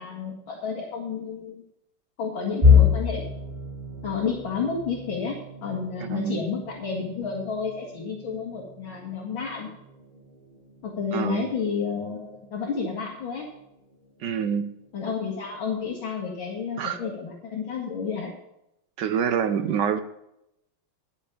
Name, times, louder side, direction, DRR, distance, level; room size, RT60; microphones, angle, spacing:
voice 1, 0.0-1.6 2.2-3.3 4.0-9.7 10.8-13.5 14.9-18.3, left 5 dB, 65° left, -4 dB, 3.0 m, -31 dB
sound 1, 2.6-14.5 14.9-15.1 15.5-15.7 16.6-17.0, left 6 dB, 20° right, 2.2 m, -28 dB
voice 2, 6.0-6.4 11.1-11.5 14.2-14.7 16.8-17.0 19.0-20.0, right 7 dB, 65° right, 10 dB, 1.2 m, -26 dB
12.0 x 7.1 x 7.1 m, 0.82 s
omnidirectional pair, 2.3 m